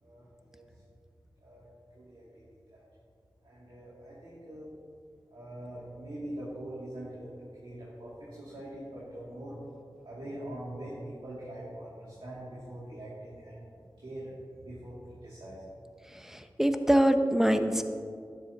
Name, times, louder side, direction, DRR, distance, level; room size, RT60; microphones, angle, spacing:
voice 1, 0.0-0.6 1.4-1.7 1.9-2.4 2.7-2.8 3.4-4.7 5.3-9.6 10.0-13.6 14.0-14.3 14.6-15.6, right 1 dB, 90° right, -9 dB, 2.3 m, -43 dB
voice 2, 16.3-17.8, equal, 5° right, 7 dB, 0.7 m, -24 dB
12.0 x 11.0 x 2.8 m, 2.3 s
wide cardioid pair, 65°, 8 cm